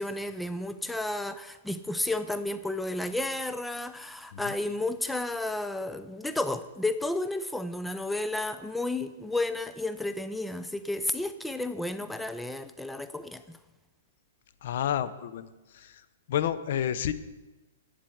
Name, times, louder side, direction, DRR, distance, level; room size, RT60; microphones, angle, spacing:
voice 1, 0.0-13.6, left 2 dB, 5° left, 11 dB, 0.4 m, -32 dB
voice 2, 14.6-16.0 16.3-17.1, left 10 dB, 60° left, 14 dB, 0.7 m, -30 dB
8.5 x 7.7 x 7.9 m, 1.1 s
hypercardioid pair, 145°, 0 cm